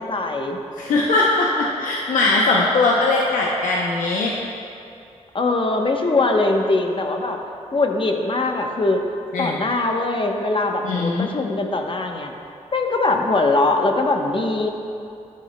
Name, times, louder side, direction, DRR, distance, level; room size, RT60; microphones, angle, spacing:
voice 1, 0.0-0.6 5.3-7.4 7.7-9.0 9.4-12.3 12.7-14.7, left 2 dB, 40° left, 3 dB, 0.9 m, -21 dB
voice 2, 0.8-4.3 9.3-9.6 10.8-11.3, left 3 dB, 90° left, -3 dB, 0.6 m, -20 dB
11.5 x 9.5 x 2.2 m, 2.6 s
cardioid pair, 55°, 13 cm